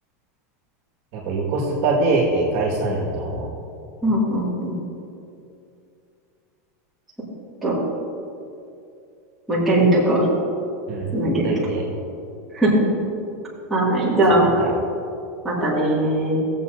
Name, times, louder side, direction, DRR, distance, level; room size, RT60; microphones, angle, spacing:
voice 1, 1.1-3.5 10.9-11.1 11.4-11.9 14.6-14.7, right 3 dB, 40° right, -3 dB, 1.8 m, -23 dB
voice 2, 4.0-4.8 7.6-7.7 9.5-10.3 11.1-11.5 12.5-12.9 13.7-14.6 15.4-16.4, right 1 dB, ahead, -11 dB, 2.1 m, -19 dB
17.0 x 7.5 x 2.7 m, 2.6 s
supercardioid pair, 175°, 9 cm